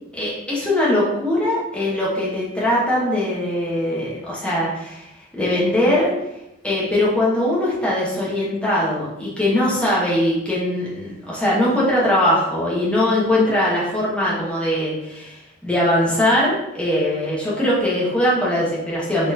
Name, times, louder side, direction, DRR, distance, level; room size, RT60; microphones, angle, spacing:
voice 1, 0.1-6.1 6.6-19.3, left 1 dB, 5° left, -7 dB, 0.9 m, -21 dB
3.9 x 2.9 x 2.6 m, 0.88 s
head